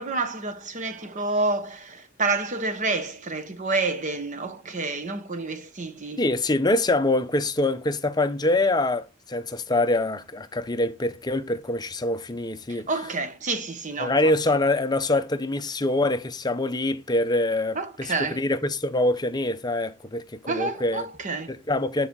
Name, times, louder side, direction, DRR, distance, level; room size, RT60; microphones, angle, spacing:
voice 1, 0.0-6.2 12.7-14.3 17.7-18.4 20.5-21.5, right 3 dB, 35° right, 0.9 m, -29 dB
voice 2, 6.2-12.9 14.0-21.1 21.5-22.1, left 2 dB, 20° left, 0.6 m, -25 dB
10.0 x 4.0 x 3.6 m
head